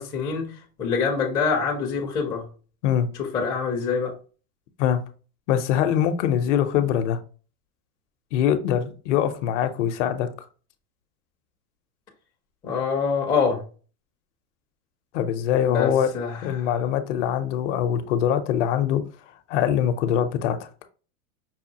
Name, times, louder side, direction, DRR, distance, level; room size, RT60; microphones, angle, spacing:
voice 1, 0.0-2.5 3.2-4.1 12.6-13.6 15.6-16.7, left 5 dB, 10° left, 0.4 m, -25 dB
voice 2, 5.5-7.2 8.3-10.3 15.1-16.1 16.4-19.0 19.5-20.7, left 9 dB, 55° left, 0.6 m, -23 dB
5.5 x 2.3 x 2.7 m
supercardioid pair, 145°, 45 cm